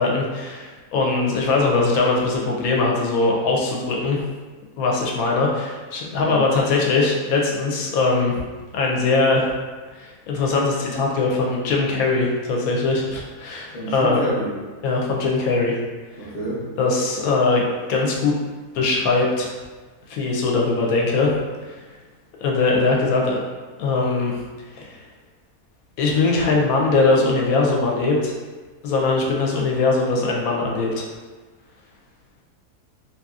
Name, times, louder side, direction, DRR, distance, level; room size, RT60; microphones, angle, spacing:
voice 1, 0.0-4.2 4.8-8.3 8.7-9.5 10.0-14.2 14.8-15.8 16.8-18.3 18.7-19.5 20.1-21.3 21.7-21.8 22.4-23.4 23.8-24.3 24.7-24.9 26.0-28.3 28.8-31.1, left 3 dB, 75° left, -1 dB, 1.0 m, -21 dB
voice 2, 13.7-14.5 16.1-16.6, right 1 dB, 40° left, -11 dB, 0.9 m, -28 dB
2.8 x 2.7 x 2.3 m, 1.3 s
omnidirectional pair, 1.6 m